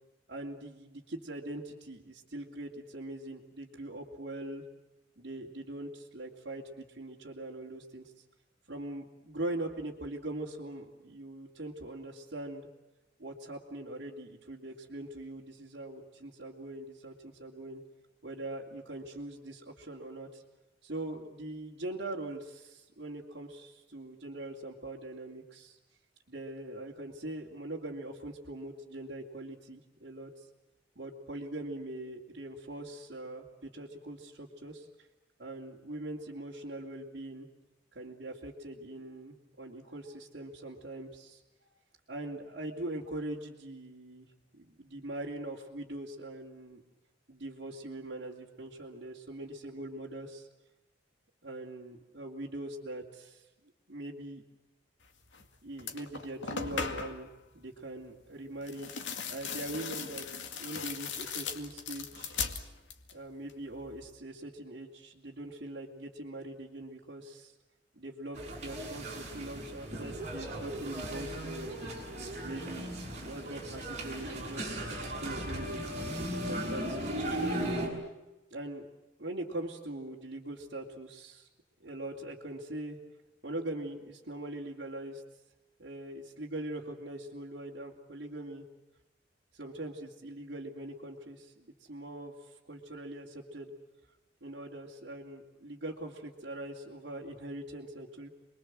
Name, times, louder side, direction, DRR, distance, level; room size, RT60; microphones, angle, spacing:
voice 1, 0.3-4.6 5.2-8.1 8.7-12.7 13.2-17.8 18.2-20.4 20.8-25.8 26.3-30.5 31.0-34.9 35.4-37.5 37.9-41.4 42.1-44.3 44.5-46.8 47.3-50.5 51.4-53.4 53.9-54.4 55.6-57.3 57.5-58.9 59.3-60.3 60.6-62.5 63.1-67.5 68.0-71.8 72.4-75.8 76.4-78.0 78.5-78.8 79.2-81.5 81.8-83.0 83.4-85.2 85.8-88.7 89.5-93.7 94.4-98.3, right 1 dB, 65° right, -4 dB, 2.8 m, -42 dB
sound 1, 55.3-55.5 55.8-57.3 58.6-63.2 63.5-64.1, left 5 dB, 80° left, 2.2 m, -38 dB
sound 2, 68.3-77.9, right 1 dB, 40° right, 6.4 m, -37 dB
28.5 x 22.0 x 7.7 m, 1.0 s
head